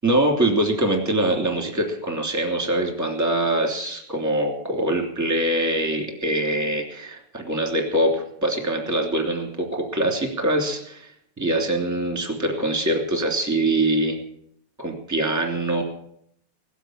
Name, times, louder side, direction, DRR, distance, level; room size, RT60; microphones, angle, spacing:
voice 1, 0.0-14.2 14.8-15.8, right 1 dB, 5° right, 2 dB, 2.4 m, -23 dB
18.5 x 8.2 x 9.0 m, 0.71 s
omnidirectional pair, 3.9 m